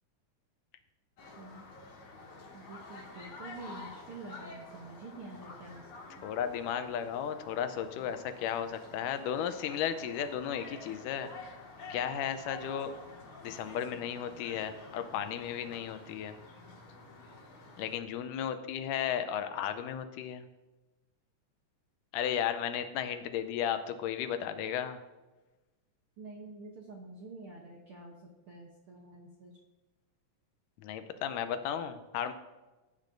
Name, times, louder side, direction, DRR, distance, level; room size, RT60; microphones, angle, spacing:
sound 1, 1.2-18.0, left 3 dB, 55° left, 3.0 m, -50 dB
voice 1, 2.5-5.9 6.2-6.3 26.2-28.2 28.5-29.5, right 3 dB, 75° right, -1 dB, 1.2 m, -48 dB
voice 2, 6.2-11.6 11.9-12.9 13.4-16.4 17.8-20.5 22.1-25.0 30.8-32.3, left 9 dB, 90° left, 9 dB, 2.2 m, -34 dB
15.0 x 8.4 x 2.6 m, 1.1 s
omnidirectional pair, 3.7 m